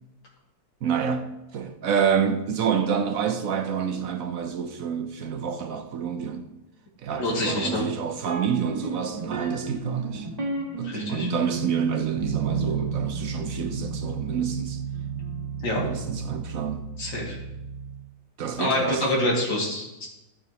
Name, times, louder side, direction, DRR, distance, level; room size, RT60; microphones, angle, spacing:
voice 1, 0.8-1.3 1.5-6.5 7.0-10.3 10.8-14.8 15.7-16.9 18.4-19.1, right 7 dB, 65° right, 0.9 m, -28 dB
voice 2, 7.2-7.8 10.8-11.3 15.6-15.8 17.0-17.4 18.6-20.1, left 1 dB, 75° left, 3.0 m, -26 dB
sound 1, 8.2-18.0, right 4 dB, 25° right, 1.3 m, -32 dB
14.0 x 7.3 x 2.9 m
omnidirectional pair, 2.1 m